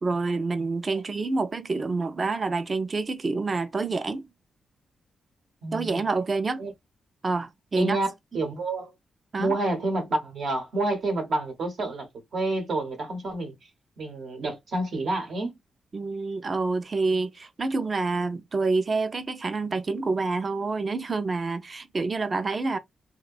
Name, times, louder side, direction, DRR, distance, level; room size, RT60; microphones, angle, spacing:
voice 1, 0.0-4.3 5.7-6.6 7.2-8.0 9.3-9.6 15.9-22.8, right 3 dB, 35° right, 0.4 m, -27 dB
voice 2, 5.6-6.0 6.6-6.7 7.8-8.9 9.4-13.5 14.0-15.5, right 2 dB, 70° right, 0.9 m, -29 dB
2.7 x 2.2 x 2.3 m
cardioid pair, 90°, 0 cm